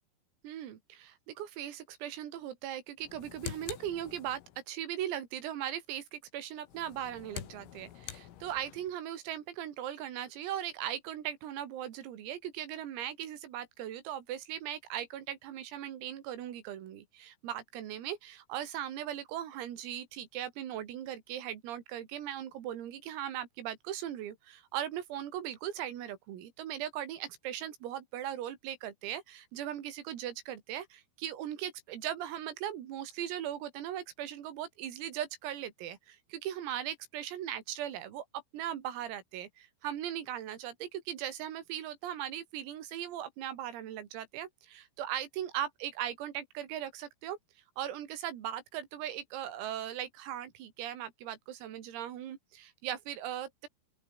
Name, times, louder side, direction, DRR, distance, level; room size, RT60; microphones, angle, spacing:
voice 1, 0.4-4.4 4.7-47.4 47.8-53.7, right 11 dB, 90° right, 5.3 m, -39 dB
sound 1, 3.0-4.6 6.6-8.9, left 12 dB, 75° left, 4.8 m, -46 dB
open air
omnidirectional pair, 5.9 m